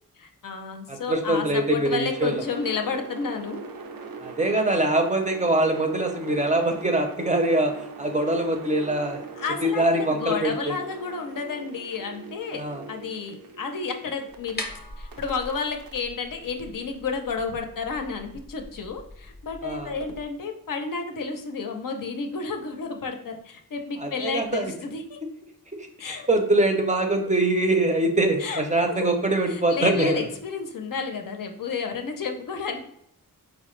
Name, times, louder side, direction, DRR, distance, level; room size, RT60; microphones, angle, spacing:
voice 1, 0.2-3.6 9.4-12.6 12.9-14.6 15.0-25.2 26.0-26.3 28.4-28.6 28.9-29.1 29.5-32.9, left 5 dB, 70° left, 4 dB, 0.5 m, -31 dB
voice 2, 0.9-2.4 4.2-9.2 9.6-10.8 12.5-12.8 19.6-19.9 24.0-24.7 26.1-30.2, right 2 dB, 20° right, 3 dB, 0.4 m, -23 dB
sound 1, 2.1-14.5 15.1-17.2, right 4 dB, 90° right, 0.5 m, -41 dB
sound 2, 14.3-20.3, left 2 dB, 30° left, 0.6 m, -42 dB
4.5 x 2.0 x 3.0 m, 0.74 s
wide cardioid pair, 80°, 34 cm